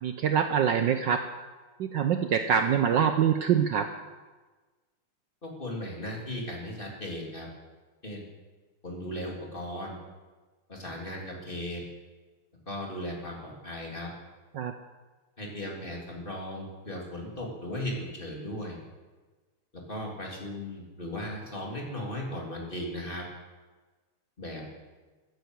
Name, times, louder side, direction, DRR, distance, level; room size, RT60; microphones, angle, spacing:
voice 1, 0.0-1.2 1.8-3.9 14.5-14.7, right 8 dB, 65° right, 7 dB, 1.3 m, -25 dB
voice 2, 5.4-7.5 8.0-8.3 8.8-10.0 10.7-11.8 12.7-14.1 15.4-18.8 19.7-23.2 24.4-24.7, left 1 dB, 25° left, -2 dB, 3.5 m, -37 dB
14.0 x 10.5 x 8.1 m, 1.3 s
omnidirectional pair, 2.3 m